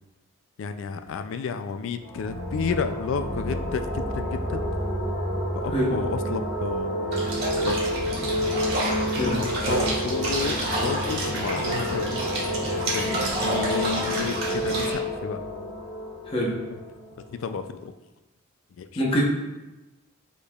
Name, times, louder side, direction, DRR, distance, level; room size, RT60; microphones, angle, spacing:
voice 1, 0.6-4.6 5.5-7.2 7.6-8.0 9.3-12.2 12.9-15.4 17.3-17.9 18.8-19.0, left 5 dB, 65° left, 9 dB, 0.3 m, -32 dB
sound 1, 2.0-17.5, equal, 85° left, 1.5 m, -29 dB
sound 2, 7.1-14.9, right 1 dB, 50° right, 1.5 m, -29 dB
voice 2, 16.3-16.6 19.0-19.2, equal, 25° left, -4 dB, 0.9 m, -24 dB
5.0 x 4.4 x 2.3 m, 1.0 s
head